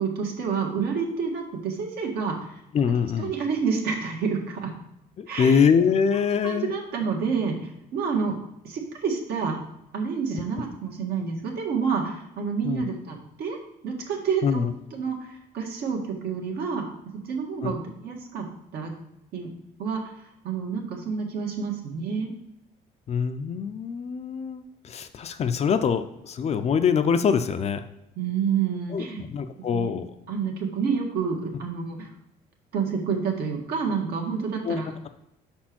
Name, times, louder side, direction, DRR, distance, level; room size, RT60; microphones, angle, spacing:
voice 1, 0.0-2.4 3.2-4.7 5.3-5.7 6.1-7.6 7.9-8.4 8.6-9.6 9.9-13.6 13.8-16.8 17.2-18.5 18.7-18.9 19.3-19.5 19.8-20.0 20.4-22.3 28.2-29.3 29.6-29.9 30.3-32.1 32.7-35.1, right 6 dB, 70° right, 1 dB, 1.5 m, -28 dB
voice 2, 2.7-3.3 5.2-6.7 12.6-12.8 14.4-14.7 17.6-17.8 23.1-27.8 28.9-30.1 34.6-34.8, left 6 dB, 40° left, 9 dB, 0.5 m, -24 dB
5.1 x 4.4 x 6.0 m, 0.86 s
cardioid pair, 110°, 17 cm